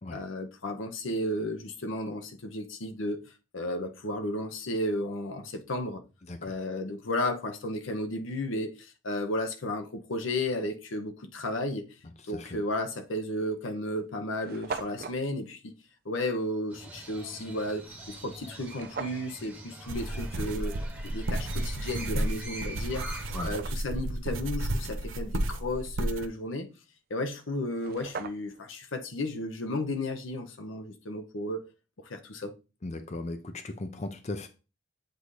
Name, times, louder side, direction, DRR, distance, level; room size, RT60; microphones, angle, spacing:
voice 1, 0.1-3.2 3.5-6.0 6.4-11.8 12.3-15.7 16.0-23.1 23.4-26.7 27.1-31.7 32.1-32.5, left 1 dB, 85° left, 0.9 m, -33 dB
sound 1, 12.8-13.0 13.7-13.8 14.0-14.1 14.3-15.2 18.6-19.3 22.2-22.3 22.9-24.0 27.4-27.5 27.7-28.7, right 5 dB, 50° right, 0.4 m, -40 dB
Crow, 16.7-23.5, right 1 dB, 10° right, 1.1 m, -44 dB
sound 2, 19.9-26.3, right 1 dB, 80° right, 0.7 m, -32 dB
voice 2, 32.8-34.5, left 2 dB, 35° left, 0.6 m, -37 dB
8.0 x 2.7 x 4.8 m
head